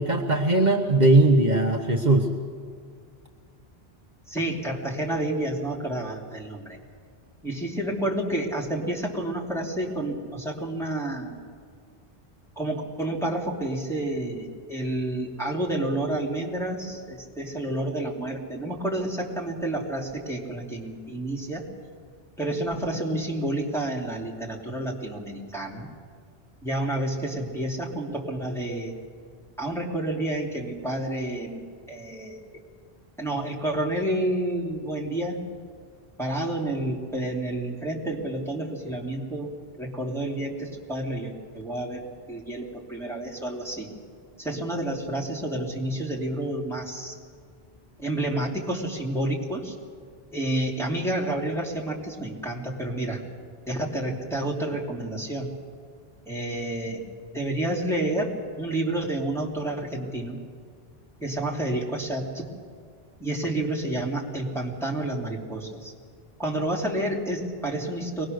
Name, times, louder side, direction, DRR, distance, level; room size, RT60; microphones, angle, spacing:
voice 1, 0.0-2.3, right 2 dB, 45° right, 1 dB, 1.3 m, -19 dB
voice 2, 4.3-6.8 7.4-11.3 12.6-21.7 22.4-25.9 26.6-28.9 29.6-31.6 31.9-32.4 33.2-35.4 36.2-43.9 44.4-47.1 48.0-49.7 50.3-53.2 53.7-55.5 56.3-57.0 57.3-60.4 61.2-62.4 63.2-65.9 66.4-68.3, right 1 dB, ahead, -3 dB, 2.9 m, -29 dB
23.5 x 19.5 x 6.5 m, 2.1 s
omnidirectional pair, 1.0 m